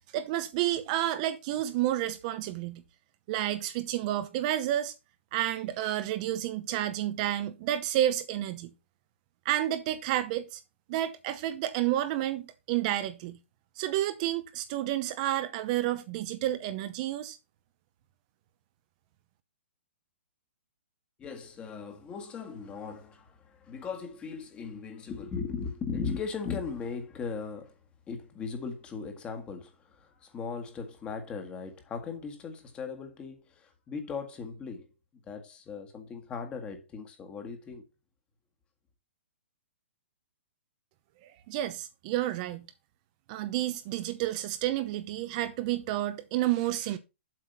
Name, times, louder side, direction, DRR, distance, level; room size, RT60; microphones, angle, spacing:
voice 1, 0.1-2.8 3.3-4.9 5.3-8.7 9.4-10.6 10.9-13.4 13.8-17.4 41.2-42.7 43.3-47.0, right 13 dB, 35° right, 0.8 m, -30 dB
voice 2, 21.2-27.8 28.1-34.9 35.2-37.9, left 5 dB, 15° left, 1.7 m, -38 dB
7.7 x 6.1 x 5.4 m
hypercardioid pair, 150°, 6 cm